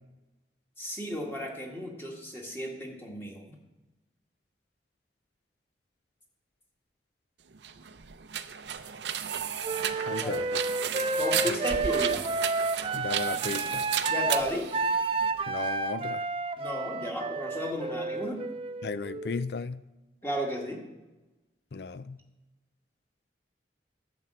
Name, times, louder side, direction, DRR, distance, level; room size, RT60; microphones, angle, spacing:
voice 1, 0.8-3.4 10.2-10.4 11.2-12.2 14.1-14.7 16.6-18.4 20.2-20.8, equal, 15° left, 0 dB, 1.7 m, -34 dB
sound 1, 7.5-15.4, right 9 dB, 80° right, 0.6 m, -34 dB
Wind instrument woodwind instrument, 9.6-19.4, right 3 dB, 30° right, 0.4 m, -31 dB
voice 2, 10.1-10.6 12.9-13.8 15.5-16.2 18.8-19.8 21.7-22.2, left 4 dB, 65° left, 15 dB, 0.5 m, -35 dB
11.0 x 5.9 x 7.7 m, 1.1 s
head